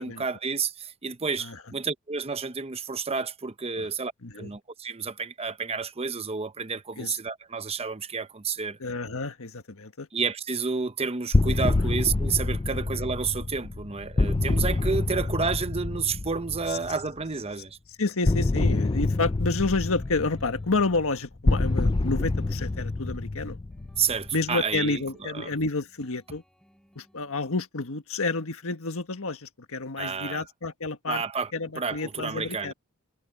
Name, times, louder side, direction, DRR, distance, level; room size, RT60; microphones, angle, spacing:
voice 1, 0.0-4.1 4.4-8.8 10.1-17.8 24.0-25.5 30.0-30.4 31.1-32.7, right 5 dB, 25° right, 0.8 m, -30 dB
voice 2, 8.8-10.1 11.4-11.5 12.7-12.8 16.7-16.8 18.0-23.6 24.3-26.4 26.9-31.2 31.5-32.7, left 3 dB, 65° left, 1.6 m, -30 dB
sound 1, 11.3-17.1 18.2-24.5, left 2 dB, 20° left, 0.4 m, -27 dB
sound 2, 19.7-27.6, equal, 5° left, 5.4 m, -60 dB
head